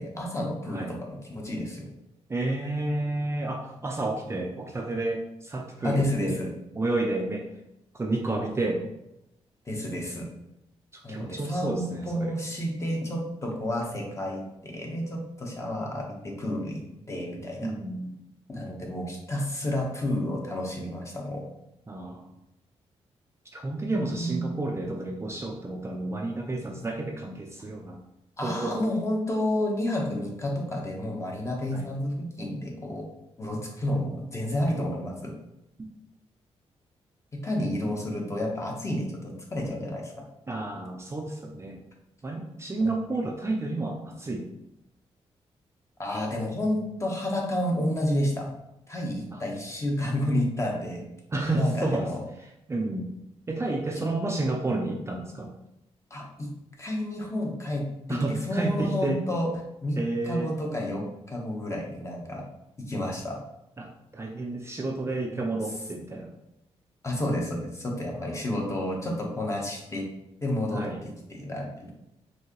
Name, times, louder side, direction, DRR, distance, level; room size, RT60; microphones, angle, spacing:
voice 1, 0.0-1.9 5.8-6.5 9.7-10.3 11.0-17.7 18.5-21.4 24.1-24.5 28.4-33.0 33.4-35.3 37.3-40.3 42.8-43.0 46.0-48.5 48.9-51.0 51.5-52.2 56.1-56.5 56.8-59.5 59.8-60.0 60.2-62.4 62.8-63.4 67.0-70.1 70.4-71.9, left 1 dB, 25° left, -1 dB, 1.0 m, -30 dB
voice 2, 2.3-6.4 6.8-7.5 7.9-8.8 10.9-12.3 17.6-18.2 21.9-22.3 23.5-28.0 28.4-28.8 31.7-31.9 40.5-41.8 42.2-44.5 49.3-49.4 51.3-52.1 52.7-53.1 53.5-55.5 58.1-59.2 60.0-60.5 63.8-63.9 64.1-66.3 68.1-68.4 70.7-71.0, right 2 dB, 25° right, 1 dB, 0.5 m, -30 dB
4.5 x 2.7 x 3.0 m, 0.85 s
cardioid pair, 100°, 11 cm